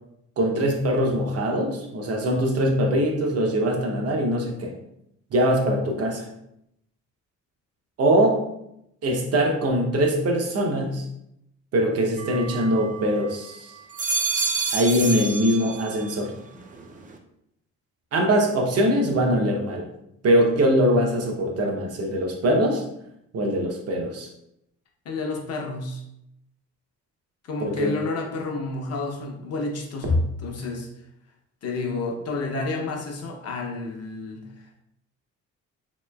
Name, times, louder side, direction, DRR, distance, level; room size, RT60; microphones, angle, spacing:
voice 1, 0.4-4.7 5.3-6.2 8.0-8.4 9.0-11.0 11.7-13.7 14.7-16.3 18.1-19.9 20.2-22.8 23.3-24.3 27.6-28.0, equal, 55° right, 1 dB, 0.7 m, -22 dB
sound 1, 12.2-13.3 13.8-16.2 16.5-17.1, right 4 dB, 25° right, 0.4 m, -29 dB
voice 2, 25.0-26.0 27.4-30.9 31.6-34.4, left 3 dB, 55° left, 1 dB, 0.7 m, -30 dB
3.0 x 3.0 x 2.2 m, 0.80 s
cardioid pair, 90°, 30 cm